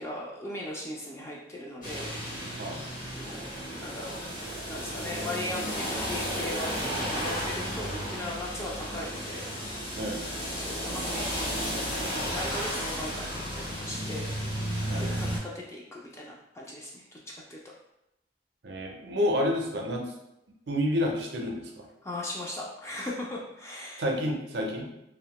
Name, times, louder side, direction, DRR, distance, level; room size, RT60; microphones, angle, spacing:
voice 1, 0.0-2.1 3.1-10.0 10.5-14.3 15.0-17.6 22.0-24.0, left 1 dB, 15° left, -3 dB, 0.3 m, -39 dB
sound 1, 1.8-15.4, equal, 45° left, 0.8 m, -33 dB
voice 2, 18.6-20.0 20.7-21.9 24.0-24.9, left 1 dB, 60° right, 1 dB, 0.5 m, -29 dB
2.7 x 2.1 x 2.9 m, 0.85 s
head